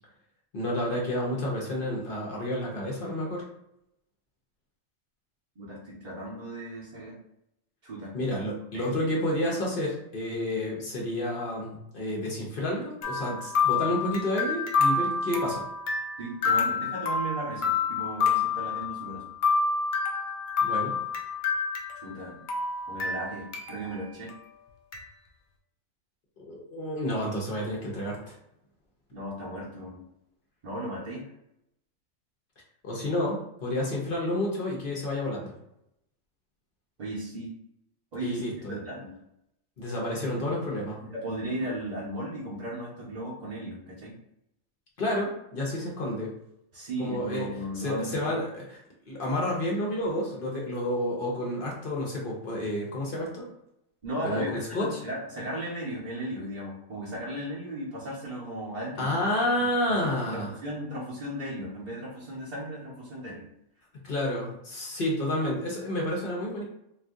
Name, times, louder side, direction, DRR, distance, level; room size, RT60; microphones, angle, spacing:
voice 1, 0.5-3.4 8.1-15.6 20.6-21.0 26.4-28.4 32.8-35.5 38.2-38.8 39.8-41.0 45.0-46.3 47.0-47.5 47.8-48.6 49.1-53.5 54.2-55.0 59.0-60.5 64.0-66.6, left 1 dB, 50° left, -3 dB, 0.8 m, -30 dB
voice 2, 5.6-7.2 7.8-8.9 16.2-19.3 22.0-22.4 22.9-24.3 29.1-30.0 30.6-31.3 37.0-37.5 38.1-39.2 41.0-44.2 46.7-48.3 54.0-59.1 59.6-63.5, right 1 dB, 45° right, -8 dB, 0.7 m, -36 dB
sound 1, 13.0-22.2 22.5-23.9 24.3-24.4 24.9-25.0, left 5 dB, 90° left, 0.4 m, -28 dB
2.6 x 2.5 x 3.6 m, 0.79 s
omnidirectional pair, 1.5 m